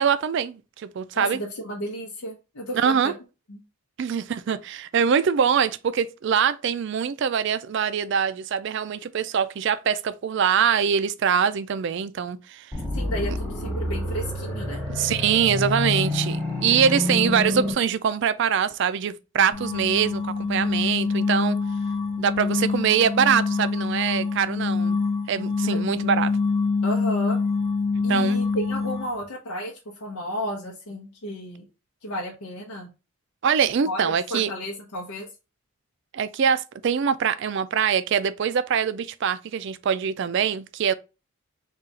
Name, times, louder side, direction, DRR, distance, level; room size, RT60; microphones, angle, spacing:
voice 1, 0.0-1.4 2.7-3.1 4.0-12.7 14.9-21.6 22.2-25.0 25.3-26.3 28.0-28.4 33.4-34.5 36.1-40.9, right 7 dB, 55° right, 0.3 m, -23 dB
voice 2, 1.2-3.1 3.5-3.6 12.9-14.8 25.7-25.8 26.8-27.4 28.0-31.7 32.0-32.9 33.8-35.3, equal, 85° left, 0.8 m, -33 dB
sound 1, 12.7-17.7, left 2 dB, 5° left, 1.1 m, -28 dB
sound 2, 19.5-29.2, left 4 dB, 40° left, 0.7 m, -25 dB
3.7 x 2.4 x 4.0 m
head